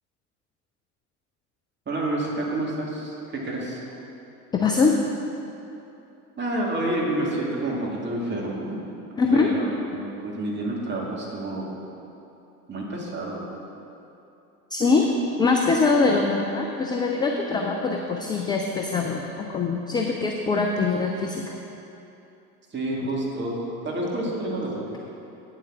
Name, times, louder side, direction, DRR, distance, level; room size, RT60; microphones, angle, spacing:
voice 1, 1.9-3.8 6.4-8.8 9.3-11.7 12.7-13.4 22.7-25.0, right 1 dB, 25° right, -4 dB, 2.4 m, -29 dB
voice 2, 4.5-5.0 9.2-9.6 14.7-15.1 15.4-21.6 23.0-23.1, left 4 dB, 10° left, 1 dB, 0.3 m, -23 dB
8.8 x 7.5 x 6.2 m, 2.8 s
figure-of-eight pair, 75°, 46 cm